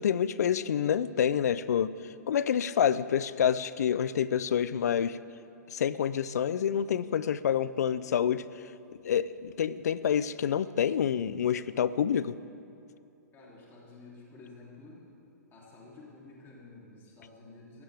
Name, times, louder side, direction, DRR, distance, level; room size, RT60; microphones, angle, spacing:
voice 1, 0.0-1.9 2.3-5.2 5.7-8.5 9.0-12.4, left 8 dB, 65° left, 16 dB, 0.5 m, -27 dB
voice 2, 13.3-15.1 15.5-17.8, left 3 dB, 25° left, -4 dB, 3.2 m, -51 dB
18.5 x 15.5 x 3.5 m, 2.6 s
hypercardioid pair, 125°, 9 cm